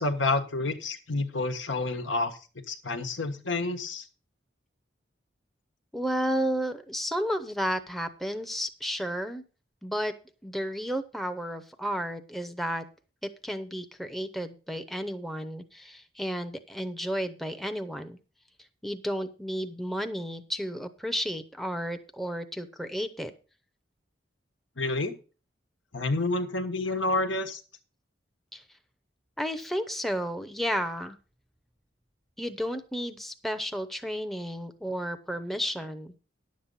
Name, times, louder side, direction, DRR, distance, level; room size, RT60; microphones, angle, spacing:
voice 1, 0.0-2.4 2.7-4.1 24.8-25.1 25.9-27.6, left 2 dB, 90° left, 7 dB, 1.3 m, -29 dB
voice 2, 5.9-9.4 9.8-10.2 10.4-12.9 13.2-18.2 18.8-23.3 28.5-28.6 29.4-31.2 32.4-36.2, equal, ahead, 7 dB, 0.6 m, -32 dB
10.5 x 7.4 x 5.4 m, 0.35 s
head